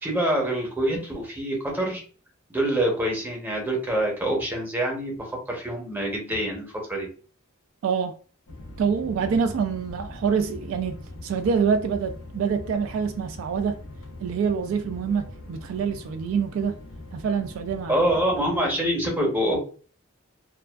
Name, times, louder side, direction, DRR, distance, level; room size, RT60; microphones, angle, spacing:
voice 1, 0.0-2.0 2.5-7.1 9.0-9.5 17.9-19.6, right 1 dB, 10° right, 0.7 m, -26 dB
voice 2, 7.8-8.2 8.8-13.8 14.2-16.7 17.1-18.0, right 6 dB, 75° right, 0.3 m, -26 dB
sound 1, 8.5-18.5, left 1 dB, 90° left, 0.6 m, -41 dB
2.4 x 2.3 x 2.2 m
head